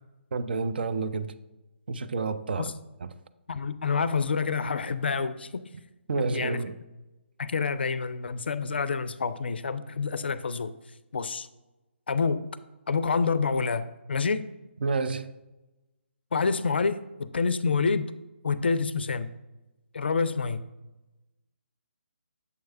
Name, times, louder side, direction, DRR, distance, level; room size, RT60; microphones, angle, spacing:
voice 1, 0.3-1.3 1.9-2.7 3.0-3.1 6.1-6.7 14.8-15.3, right 4 dB, 50° right, 0.4 m, -29 dB
voice 2, 3.5-5.7 6.2-6.6 7.4-10.7 11.1-11.5 12.1-12.4 12.9-14.5 16.3-18.1 18.4-19.3 19.9-20.6, left 5 dB, 55° left, 0.4 m, -28 dB
7.0 x 3.2 x 4.5 m
figure-of-eight pair, 140°, 7 cm